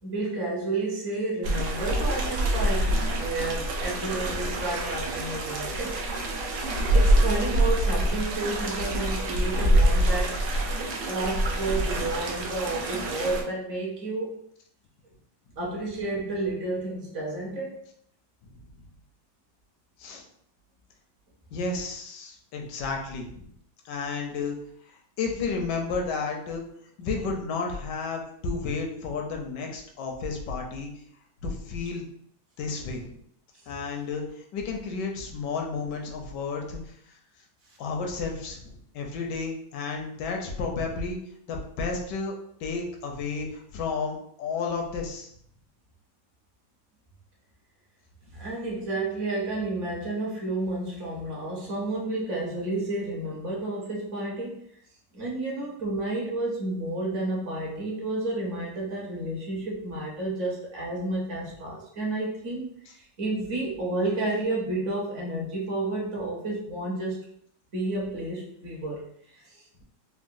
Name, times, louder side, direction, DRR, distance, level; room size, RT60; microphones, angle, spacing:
voice 1, 0.0-6.0 6.6-10.4 11.0-14.4 15.6-17.8 37.7-37.8 48.3-54.6 55.1-67.2 67.7-69.8, right 2 dB, 55° right, -3 dB, 1.0 m, -31 dB
sound 1, 1.4-13.4, right 1 dB, 75° right, 0.7 m, -25 dB
voice 2, 21.5-23.5 23.8-24.6 24.8-26.6 27.0-31.0 31.4-32.1 32.6-33.1 33.7-36.9 37.8-41.2 41.5-45.3, left 4 dB, 80° left, 2 dB, 1.2 m, -32 dB
3.7 x 2.0 x 2.5 m, 0.67 s
omnidirectional pair, 1.9 m